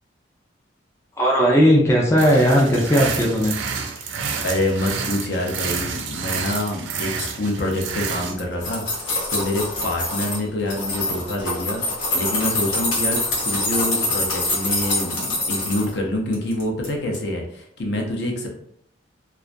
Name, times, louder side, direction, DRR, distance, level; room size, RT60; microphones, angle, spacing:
voice 1, 1.2-3.6, equal, 15° left, -3 dB, 0.3 m, -17 dB
sound 1, 2.2-8.3, right 6 dB, 75° right, 0.4 m, -29 dB
voice 2, 4.4-8.8 9.3-11.8 12.1-18.5, left 1 dB, 60° left, 0 dB, 0.5 m, -26 dB
sound 2, 8.3-10.4 10.7-15.9 16.3-16.9 17.1-17.2, left 2 dB, 85° left, 0.9 m, -25 dB
2.3 x 2.1 x 2.5 m, 0.68 s
head